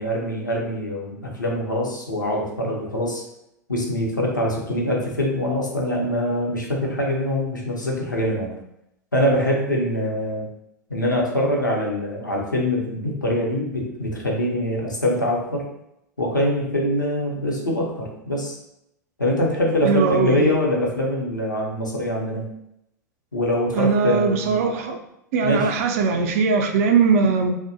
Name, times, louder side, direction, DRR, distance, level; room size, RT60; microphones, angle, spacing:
voice 1, 0.0-3.2 3.7-8.5 9.1-10.4 10.9-15.6 16.2-18.6 19.2-22.4 23.3-24.8 25.4-25.7, left 1 dB, 85° left, -2 dB, 0.6 m, -24 dB
voice 2, 19.8-20.6 23.7-25.0 25.3-27.5, right 5 dB, 50° right, 4 dB, 0.4 m, -20 dB
2.5 x 2.1 x 2.6 m, 0.81 s
figure-of-eight pair, 95°, 10 cm